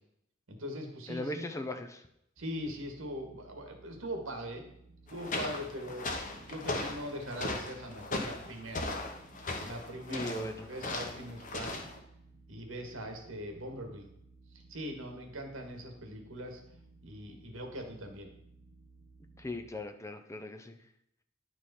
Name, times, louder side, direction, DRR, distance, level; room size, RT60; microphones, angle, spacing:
voice 1, 0.5-1.5 2.4-4.6 5.1-8.9 9.6-11.8 12.5-14.1 14.7-16.6 17.0-18.3, equal, 90° right, 4 dB, 1.6 m, -41 dB
voice 2, 1.1-2.0 10.1-10.7 19.4-20.8, left 1 dB, 15° left, 7 dB, 0.5 m, -38 dB
sound 1, 2.4-19.7, right 3 dB, 55° right, 0.9 m, -58 dB
sound 2, 5.1-12.0, left 2 dB, 40° left, 1.1 m, -38 dB
10.0 x 4.7 x 4.2 m, 0.75 s
head